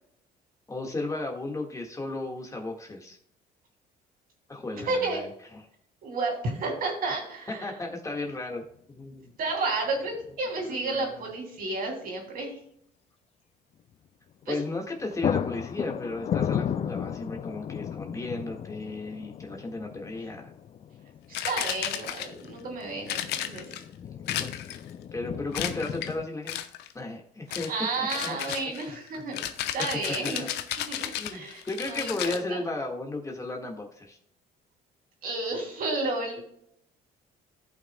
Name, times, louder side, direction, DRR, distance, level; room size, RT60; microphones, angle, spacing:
voice 1, 0.7-3.2 4.5-5.3 7.6-9.3 10.8-11.2 14.5-20.5 24.0-24.5 25.1-26.6 26.9-27.7 28.0-28.4 29.2-29.3 30.2-30.5 31.2-34.2, left 2 dB, 20° left, 1 dB, 1.6 m, -35 dB
voice 2, 4.7-5.2 6.0-7.7 9.4-12.6 14.5-14.6 21.3-23.7 27.7-29.4 29.7-30.4 30.9-32.6 35.2-36.4, right 3 dB, 55° right, 1 dB, 2.9 m, -31 dB
sound 1, 10.0-10.4 10.6-10.7 14.4-14.6 14.9-26.3, left 9 dB, 40° left, 0.4 m, -35 dB
sound 2, 21.3-22.5 23.1-23.8 24.3-24.9 25.5-26.1 26.5-26.9 27.5-27.8 28.1-32.4, left 11 dB, 80° left, 0.8 m, -33 dB
15.0 x 5.9 x 2.2 m, 0.69 s
cardioid pair, 110°, 17 cm